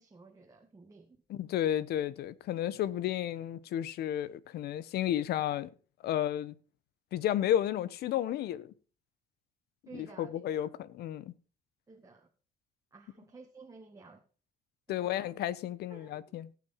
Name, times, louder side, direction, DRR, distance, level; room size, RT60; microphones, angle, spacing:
voice 1, 0.0-1.2 9.9-10.7 11.9-12.3 12.9-14.2 14.9-15.3 15.9-16.2, right 4 dB, 20° right, 1.7 m, -53 dB
voice 2, 1.3-5.7 6.0-6.5 7.1-8.7 9.9-11.3 14.9-16.5, left 11 dB, 70° left, 1.0 m, -32 dB
17.5 x 6.2 x 5.7 m
cardioid pair, 110°, 17 cm